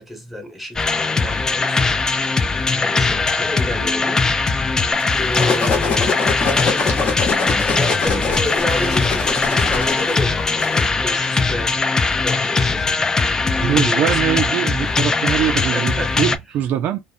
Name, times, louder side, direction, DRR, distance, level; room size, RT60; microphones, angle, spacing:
voice 1, 0.0-1.9 2.7-4.3 5.1-6.9 7.7-13.2 13.5-14.2 15.7-16.1, left 1 dB, ahead, 1.1 m, -30 dB
sound 1, 0.8-16.4, left 4 dB, 20° left, 0.3 m, -20 dB
sound 2, 5.0-10.9, left 4 dB, 40° left, 0.9 m, -24 dB
voice 2, 13.6-17.0, right 10 dB, 55° right, 0.3 m, -22 dB
2.4 x 2.1 x 2.5 m
supercardioid pair, 105°, 3 cm